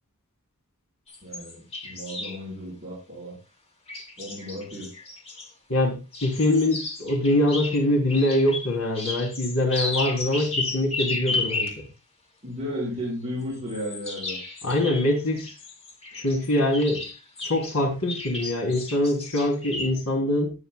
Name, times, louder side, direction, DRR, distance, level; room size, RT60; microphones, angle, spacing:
sound 1, 1.1-2.4 3.9-5.5 6.1-11.8 13.5-17.8 18.0-19.9, left 3 dB, 30° left, 2.2 m, -33 dB
voice 1, 1.2-3.4 4.2-4.9 12.4-14.4, equal, 30° right, -5 dB, 4.4 m, -34 dB
voice 2, 5.7-11.7 14.6-15.5 16.2-17.0 17.4-20.5, left 1 dB, 80° left, 2 dB, 3.2 m, -23 dB
18.0 x 8.1 x 2.3 m, 0.27 s
head